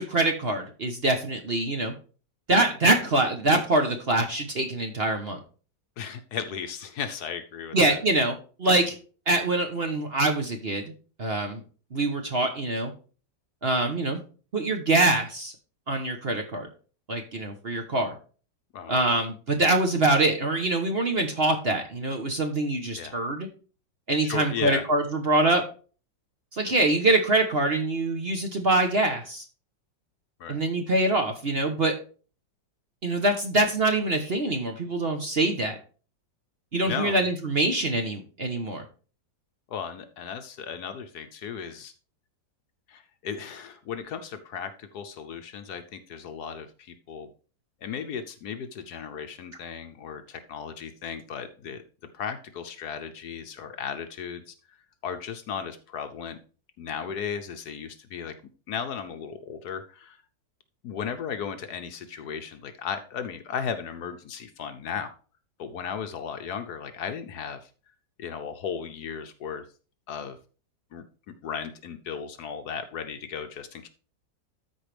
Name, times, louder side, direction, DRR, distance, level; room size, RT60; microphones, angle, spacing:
voice 1, 0.0-1.9 2.5-5.4 7.7-9.0 9.3-10.8 11.2-11.6 11.9-12.9 13.6-14.2 14.5-15.5 15.9-16.7 17.1-18.1 18.9-23.5 24.1-25.6 26.5-29.4 30.5-31.9 33.0-35.8 36.7-38.8, right 2 dB, 40° right, 4 dB, 1.0 m, -24 dB
voice 2, 6.0-8.0 18.7-19.2 23.0-23.2 24.2-24.8 30.4-30.6 36.9-37.2 39.7-41.9 42.9-47.3 47.8-51.8 52.1-54.5 55.0-56.4 56.8-58.3 58.7-60.2 60.8-65.1 65.6-67.6 68.2-69.6 70.1-70.4 70.9-71.0 71.4-73.9, left 7 dB, 65° left, 9 dB, 1.2 m, -35 dB
13.0 x 4.7 x 3.3 m, 0.38 s
omnidirectional pair, 2.0 m